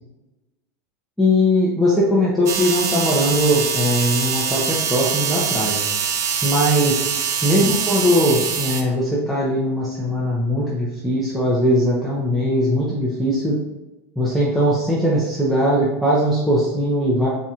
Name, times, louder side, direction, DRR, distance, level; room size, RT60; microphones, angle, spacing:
voice 1, 1.2-5.8 6.4-7.1 7.4-13.5 14.2-17.3, equal, ahead, -7 dB, 0.8 m, -20 dB
sound 1, 2.5-8.8, right 7 dB, 40° right, 0.5 m, -23 dB
4.1 x 4.0 x 2.5 m, 1.0 s
supercardioid pair, 125°, 8 cm